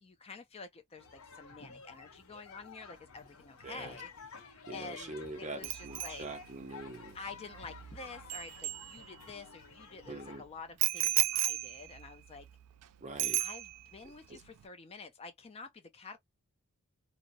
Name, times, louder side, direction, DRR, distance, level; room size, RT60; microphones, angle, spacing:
voice 1, 0.0-6.3 7.1-12.5 13.4-16.2, left 4 dB, 25° left, 0.4 m, -49 dB
sound 1, 1.0-10.4, left 5 dB, 70° left, 0.7 m, -52 dB
voice 2, 3.6-4.0 4.7-7.2 10.1-10.4 13.0-13.4 14.3-14.4, right 2 dB, 30° right, 0.6 m, -43 dB
Bicycle bell, 5.6-9.5 10.8-12.8 13.2-14.1 14.3-14.6, right 16 dB, 90° right, 0.4 m, -35 dB
2.6 x 2.0 x 2.6 m
head